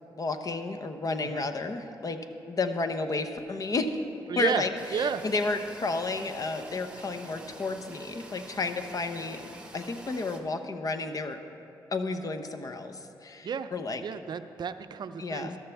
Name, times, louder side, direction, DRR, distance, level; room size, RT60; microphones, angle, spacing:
voice 1, 0.2-2.2 2.5-3.9 4.4-11.4 11.9-14.0 15.2-15.6, left 3 dB, 45° left, 7 dB, 0.8 m, -32 dB
voice 2, 4.3-4.6 4.9-5.2 13.4-13.7 14.0-15.6, right 7 dB, 55° right, 11 dB, 0.5 m, -31 dB
sound 1, 4.8-10.4, right 1 dB, 10° right, 1.3 m, -47 dB
14.0 x 12.0 x 3.5 m, 2.8 s
cardioid pair, 70°, 9 cm